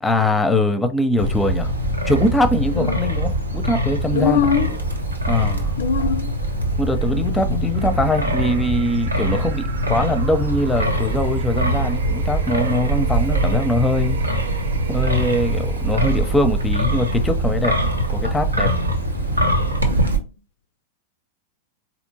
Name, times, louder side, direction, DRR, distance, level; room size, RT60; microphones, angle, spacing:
voice 1, 0.0-1.7 2.1-4.5 5.3-5.7 6.8-14.2 14.9-17.7 18.1-18.7 19.9-20.0, left 1 dB, 10° left, 0.6 m, -22 dB
Wind, 1.2-20.2, right 1 dB, 80° right, 0.8 m, -22 dB
voice 2, 4.1-4.7 5.8-6.4 19.9-20.3, left 7 dB, 60° left, 0.3 m, -22 dB
sound 1, 7.7-16.7, right 6 dB, 55° right, 0.5 m, -38 dB
4.3 x 2.9 x 2.7 m
figure-of-eight pair, 90°, 0 cm